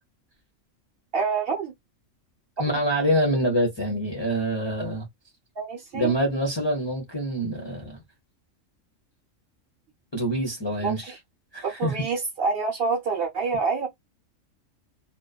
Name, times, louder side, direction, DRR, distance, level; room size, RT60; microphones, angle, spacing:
voice 1, 1.1-1.7 5.6-6.1 10.8-10.9 11.6-13.9, right 4 dB, 55° right, 0.9 m, -27 dB
voice 2, 2.6-5.1 5.9-8.0 10.1-11.2 11.5-11.9, equal, 25° left, 0.6 m, -26 dB
2.5 x 2.2 x 2.3 m
omnidirectional pair, 1.4 m